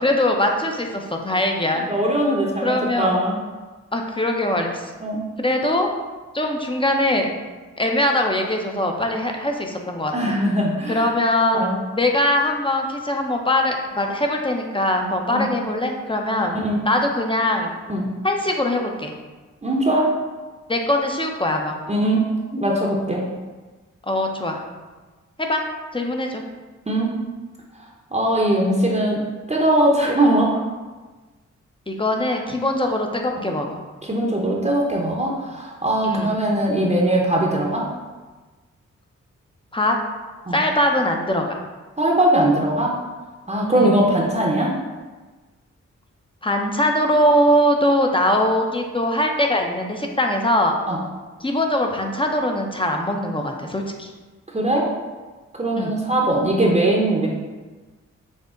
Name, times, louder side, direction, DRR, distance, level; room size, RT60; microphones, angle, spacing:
voice 1, 0.0-1.8 2.6-3.2 3.9-4.9 5.4-5.9 6.3-7.3 7.8-10.3 10.9-16.5 16.8-17.7 18.2-19.1 20.7-21.8 24.0-24.6 25.4-25.6 25.9-26.4 31.9-33.8 36.0-36.3 39.7-40.0 40.5-41.6 43.7-43.9 46.4-50.7 51.4-54.1 55.8-55.9, left 1 dB, 15° left, 2 dB, 0.7 m, -21 dB
voice 2, 1.7-3.3 5.0-5.2 10.1-11.1 11.5-11.8 15.3-15.5 16.6-16.8 17.9-18.0 19.6-20.1 21.9-22.2 22.5-23.2 26.9-27.1 28.1-29.2 29.5-30.6 34.0-37.9 40.5-40.6 42.0-42.9 43.5-44.7 50.9-51.0 54.5-54.9 55.6-57.3, right 1 dB, 25° right, -2 dB, 0.8 m, -20 dB
6.3 x 2.1 x 3.7 m, 1.3 s
cardioid pair, 45°, 30 cm